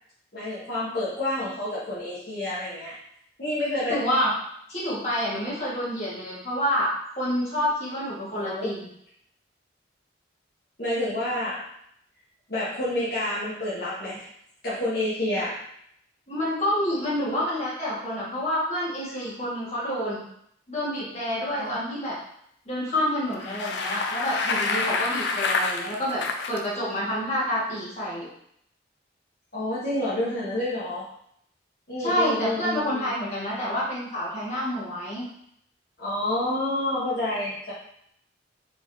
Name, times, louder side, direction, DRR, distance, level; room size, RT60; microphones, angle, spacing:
voice 1, 0.3-3.0 3.4-4.0 8.3-8.7 10.8-11.6 12.5-14.3 14.6-15.6 21.6-21.8 29.5-31.1 31.9-33.1 36.0-37.7, left 1 dB, 55° left, -10 dB, 1.3 m, -29 dB
voice 2, 3.9-4.3 4.7-8.9 16.3-20.2 20.7-22.2 22.7-28.3 32.0-35.3, equal, 35° left, -8 dB, 1.8 m, -28 dB
Bicycle, 23.3-26.6, left 4 dB, 75° left, 0.5 m, -27 dB
4.5 x 3.7 x 2.8 m, 0.70 s
head